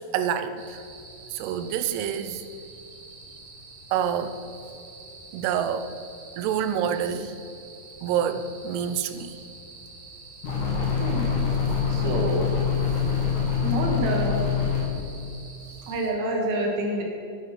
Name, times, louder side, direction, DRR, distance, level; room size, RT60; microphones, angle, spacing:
voice 1, 0.1-0.6 1.3-2.4 3.9-4.4 5.3-5.9 6.4-7.3 8.0-9.4, right 8 dB, 90° right, 11 dB, 2.7 m, -27 dB
sound 1, 0.6-16.1, right 3 dB, 50° right, 2.1 m, -46 dB
sound 2, 10.4-14.8, left 6 dB, 55° left, 2.7 m, -25 dB
voice 2, 11.0-11.5 11.9-12.5 13.6-14.4 15.9-17.0, right 1 dB, 70° right, 0 dB, 3.1 m, -27 dB
9.2 x 8.6 x 5.8 m, 2.6 s
omnidirectional pair, 4.6 m